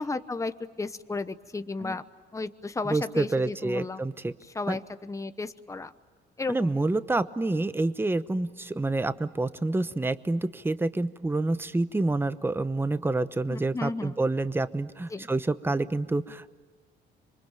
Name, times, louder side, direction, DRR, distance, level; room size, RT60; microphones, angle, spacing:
voice 1, 0.0-2.0 2.3-4.0 4.5-5.9 6.4-6.8 13.5-14.1 15.1-15.3, left 3 dB, 15° left, 11 dB, 1.0 m, -33 dB
voice 2, 2.8-4.3 4.7-4.8 6.5-16.5, right 2 dB, 10° right, 13 dB, 0.9 m, -28 dB
26.5 x 24.0 x 9.1 m, 1.4 s
cardioid pair, 90°, 20 cm